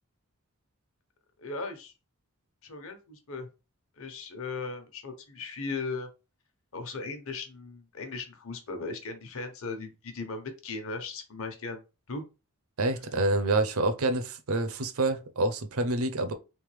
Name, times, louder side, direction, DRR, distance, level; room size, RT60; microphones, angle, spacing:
voice 1, 1.4-1.9 2.6-3.5 4.0-6.1 6.7-11.8 12.1-12.2, left 3 dB, 65° left, 1.0 m, -37 dB
voice 2, 12.8-16.3, right 2 dB, 70° right, 0.7 m, -27 dB
3.7 x 3.5 x 3.2 m
head